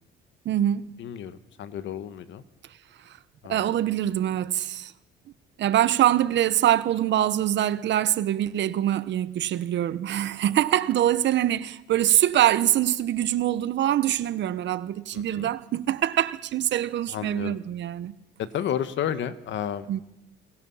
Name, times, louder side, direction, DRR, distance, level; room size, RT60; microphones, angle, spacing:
voice 1, 0.4-0.8 3.0-3.2 3.5-4.9 5.6-18.1 19.9-20.0, right 12 dB, 65° right, 1.2 m, -24 dB
voice 2, 1.0-2.4 3.4-3.8 15.1-15.5 17.1-17.6 18.5-19.9, left 9 dB, 65° left, 1.7 m, -32 dB
29.0 x 23.5 x 5.7 m
cardioid pair, 105°, 20 cm